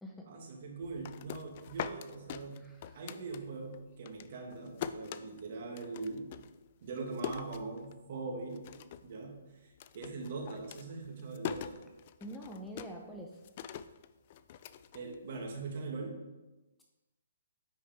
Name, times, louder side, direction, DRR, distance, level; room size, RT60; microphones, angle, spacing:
voice 1, 0.3-2.6 2.9-6.3 6.8-8.6 9.0-11.8 14.9-16.2, right 3 dB, 50° right, 1 dB, 1.8 m, -42 dB
sound 1, 0.8-3.8 4.0-8.2 8.5-9.1 9.4-15.6, left 9 dB, 40° left, 0.4 m, -43 dB
voice 2, 12.2-13.3, right 1 dB, 5° left, 0 dB, 0.7 m, -44 dB
9.1 x 4.7 x 3.6 m, 1.1 s
hypercardioid pair, 150°, 0 cm